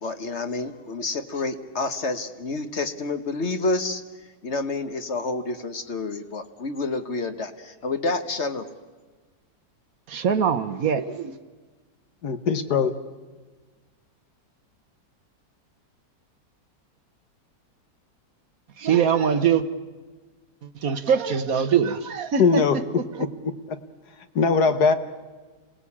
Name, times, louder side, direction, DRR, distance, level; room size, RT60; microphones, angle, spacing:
voice 1, 0.0-4.0 4.4-8.7, left 3 dB, 45° left, 9 dB, 1.3 m, -29 dB
voice 2, 10.1-11.4 18.8-19.6 20.6-22.8 23.1-23.2, right 7 dB, 60° right, 11 dB, 1.4 m, -23 dB
voice 3, 12.2-12.9 22.4-22.8 24.3-24.9, left 5 dB, 65° left, 10 dB, 1.7 m, -20 dB
27.0 x 18.0 x 8.5 m, 1.4 s
omnidirectional pair, 1.8 m